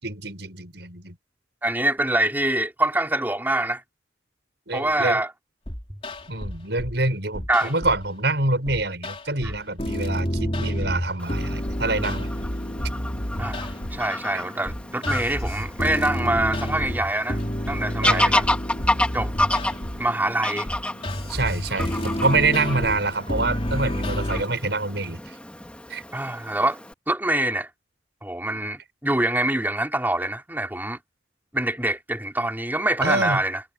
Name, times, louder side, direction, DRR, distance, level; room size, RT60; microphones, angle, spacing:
voice 1, 0.0-1.2 4.7-5.2 6.3-12.3 14.3-14.4 18.0-18.4 21.3-25.3 25.9-26.0 33.0-33.4, right 2 dB, 70° right, 6.3 m, -26 dB
voice 2, 1.6-3.8 4.7-5.3 7.5-7.7 9.4-9.5 13.4-17.4 17.7-18.5 19.1-19.3 20.0-20.7 26.1-26.8 27.1-27.7 28.2-31.0 31.5-33.6, right 1 dB, 10° right, 4.6 m, -25 dB
sound 1, 5.7-7.0 7.3-8.1 8.7-24.4, equal, 30° left, 3.7 m, -29 dB
Fowl / Bird vocalization bird call bird song, 11.2-26.9, left 1 dB, 5° left, 1.9 m, -30 dB
head